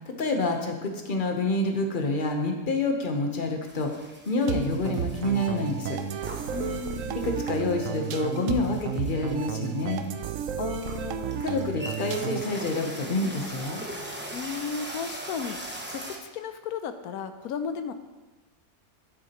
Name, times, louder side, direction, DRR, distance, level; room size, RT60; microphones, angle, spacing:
voice 1, 0.1-6.0 7.2-10.0 11.4-13.8, left 2 dB, 40° left, 3 dB, 1.0 m, -28 dB
sound 1, 3.6-16.2, right 1 dB, 10° right, 0.6 m, -42 dB
sound 2, 4.5-12.6, right 8 dB, 70° right, 0.9 m, -32 dB
voice 2, 6.5-7.3 10.6-11.3 14.3-17.9, left 7 dB, 80° left, 9 dB, 1.1 m, -35 dB
9.8 x 8.2 x 3.0 m, 1.2 s
omnidirectional pair, 1.6 m